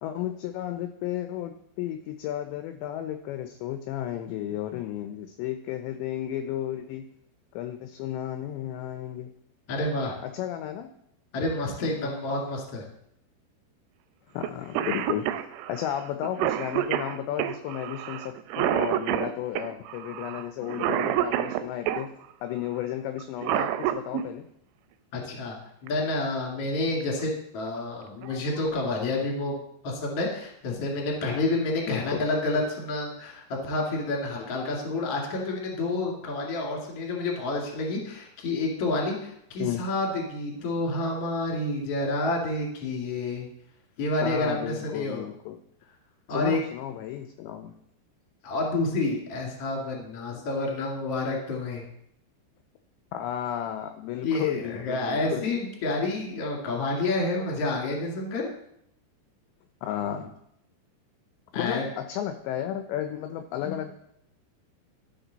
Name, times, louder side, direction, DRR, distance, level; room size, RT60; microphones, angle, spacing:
voice 1, 0.0-7.1 7.5-9.3 10.2-10.9 14.3-15.4 15.7-22.1 22.4-24.5 31.9-32.2 39.6-39.8 40.6-40.7 44.2-45.6 46.3-47.7 53.1-55.4 59.8-60.3 61.6-63.9, left 11 dB, 80° left, 7 dB, 2.6 m, -33 dB
voice 2, 9.7-10.1 11.3-12.9 25.1-25.6 25.8-29.6 29.8-43.5 44.0-45.2 46.3-46.6 48.4-51.8 54.2-58.5 61.5-61.8, left 2 dB, 45° left, -1 dB, 2.2 m, -29 dB
Cough, 14.4-14.5 14.7-22.1 23.2-24.2 25.9-26.0 27.0-27.3 27.7-27.8 28.2-28.7, right 12 dB, 85° right, 2.8 m, -28 dB
12.5 x 6.7 x 4.0 m, 0.74 s
omnidirectional pair, 5.6 m